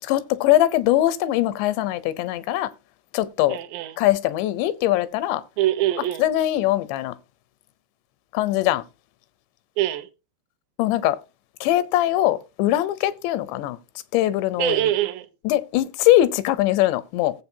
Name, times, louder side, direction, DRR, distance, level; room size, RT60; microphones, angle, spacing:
voice 1, 0.1-2.7 3.1-3.6 4.0-5.4 6.2-7.1 8.3-8.8 10.8-11.2 11.6-13.8 14.1-14.8 15.5-17.3, left 14 dB, 85° left, 2.9 m, -21 dB
voice 2, 3.5-4.0 5.6-6.3 9.8-10.1 14.6-15.3, right 13 dB, 80° right, 2.8 m, -24 dB
17.5 x 7.6 x 2.7 m
omnidirectional pair, 5.1 m